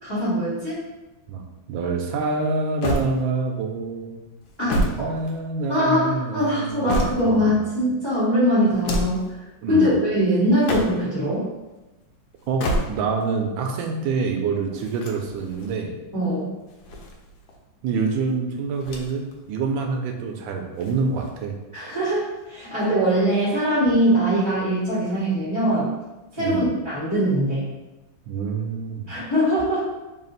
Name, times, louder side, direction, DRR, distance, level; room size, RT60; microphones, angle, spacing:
voice 1, 0.0-0.8 4.6-5.0 5.7-9.3 9.7-11.4 16.1-16.4 21.7-25.9 26.4-27.7 29.1-29.9, equal, 15° left, -12 dB, 1.3 m, -22 dB
voice 2, 1.3-4.2 4.7-7.6 9.6-9.9 12.5-16.0 17.8-21.5 26.4-26.7 28.3-29.2, right 4 dB, 80° right, 3 dB, 1.3 m, -27 dB
sound 1, 2.8-3.6 4.4-5.8 6.4-7.5 8.7-9.3 10.5-11.2 12.4-13.3 14.8-15.7 16.6-17.6 18.8-19.4 19.7-19.8 20.7-21.5, equal, 80° left, 1.3 m, -29 dB
3.5 x 2.4 x 3.9 m, 1.1 s
omnidirectional pair, 2.1 m